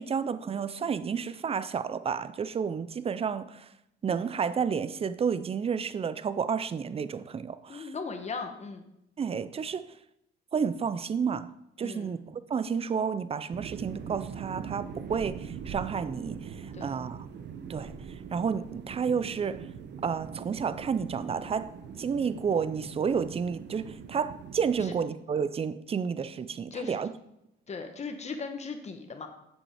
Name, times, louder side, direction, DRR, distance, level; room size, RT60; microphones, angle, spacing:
voice 1, 0.0-3.7 4.0-7.9 9.2-9.9 10.5-11.5 11.8-17.3 17.7-17.9 18.3-19.7 20.0-21.7 22.0-27.1, right 6 dB, 30° right, 0.4 m, -31 dB
voice 2, 7.7-8.8 11.8-12.1 16.7-16.9 24.8-24.9 26.7-27.0 27.7-29.3, left 4 dB, 35° left, 1.0 m, -37 dB
sound 1, 13.5-25.0, right 6 dB, 60° right, 0.8 m, -42 dB
7.3 x 5.3 x 4.9 m
cardioid pair, 90°, 20 cm